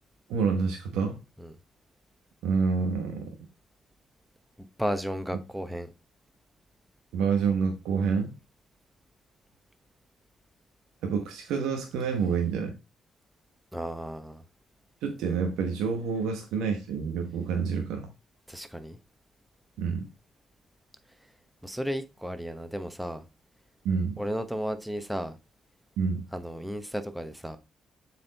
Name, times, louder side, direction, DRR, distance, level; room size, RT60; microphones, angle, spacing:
voice 1, 0.3-1.2 2.4-3.3 7.1-8.3 11.0-12.8 15.0-18.1 19.8-20.1 23.8-24.1 26.0-26.2, right 5 dB, 85° right, 1.1 m, -28 dB
voice 2, 4.6-5.9 13.7-14.4 18.5-19.0 21.6-23.2 24.2-25.4 26.3-27.6, equal, 5° right, 1.1 m, -34 dB
7.3 x 4.6 x 4.0 m
supercardioid pair, 65°, 0 cm